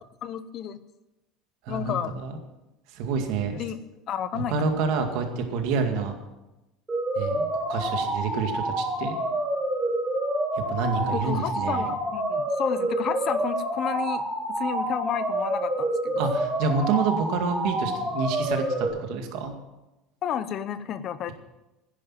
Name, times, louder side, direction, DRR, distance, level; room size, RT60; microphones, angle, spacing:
voice 1, 0.2-0.8 1.7-2.2 3.5-3.8 4.1-4.6 11.1-16.3 20.2-21.3, left 9 dB, 35° left, 13 dB, 0.7 m, -31 dB
voice 2, 1.7-2.3 2.9-3.6 4.3-6.2 7.2-9.2 10.7-11.9 16.2-19.5, right 5 dB, 60° right, 5 dB, 2.1 m, -28 dB
sound 1, 6.9-18.9, right 1 dB, 10° right, 2.7 m, -28 dB
10.5 x 10.5 x 7.4 m, 1.0 s
cardioid pair, 165°, 0 cm